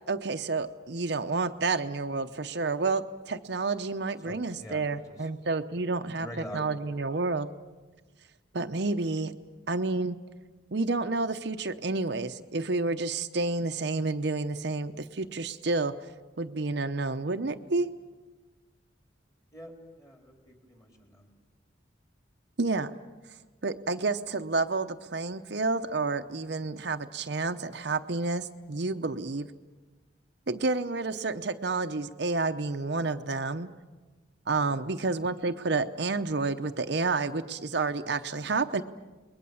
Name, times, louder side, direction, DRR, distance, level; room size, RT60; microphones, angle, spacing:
voice 1, 0.1-6.3 6.5-7.5 8.5-9.3 9.7-10.2 10.7-16.0 16.4-17.9 22.6-22.9 23.6-29.5 30.5-33.7 34.5-38.8, right 3 dB, 60° right, 8 dB, 0.7 m, -30 dB
voice 2, 4.2-5.0 5.7-6.6 19.5-21.3 34.7-34.8, equal, 20° left, 2 dB, 4.0 m, -45 dB
30.0 x 21.0 x 7.1 m, 1.3 s
head